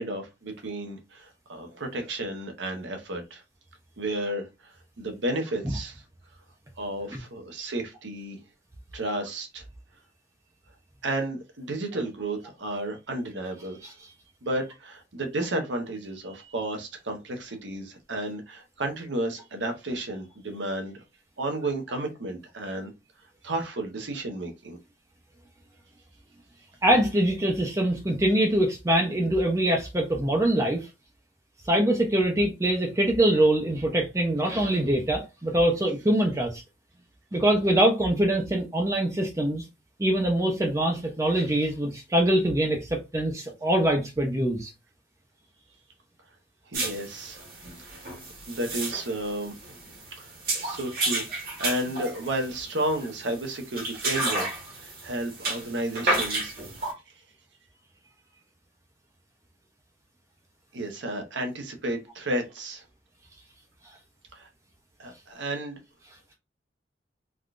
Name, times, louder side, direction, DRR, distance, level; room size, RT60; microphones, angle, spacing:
voice 1, 0.0-3.4 4.0-6.0 6.8-8.4 8.9-9.6 11.0-14.1 14.4-21.0 21.4-22.9 23.4-24.8 46.7-47.4 47.8-47.9 48.5-49.6 50.2-50.3 50.6-54.5 54.7-56.6 60.7-62.8 64.3-64.5 65.0-65.8, right 1 dB, 80° right, 0.9 m, -32 dB
voice 2, 26.8-30.9 31.7-36.6 37.3-39.6 40.0-44.7, right 1 dB, 15° right, 0.5 m, -24 dB
sound 1, 46.7-56.9, right 2 dB, 55° right, 1.1 m, -32 dB
3.5 x 2.3 x 2.4 m
head